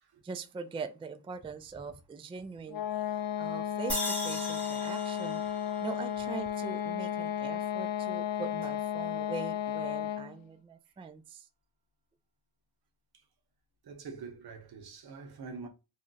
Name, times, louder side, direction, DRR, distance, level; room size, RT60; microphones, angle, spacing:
voice 1, 0.2-2.8 3.4-5.4 5.8-11.5, right 5 dB, 15° right, 0.3 m, -42 dB
sound 1, 2.7-10.4, left 10 dB, 60° left, 0.5 m, -34 dB
sound 2, 3.9-7.2, left 1 dB, 5° left, 1.0 m, -39 dB
voice 2, 13.8-15.7, right 4 dB, 70° right, 0.8 m, -45 dB
2.4 x 2.1 x 3.8 m
cardioid pair, 55°, 39 cm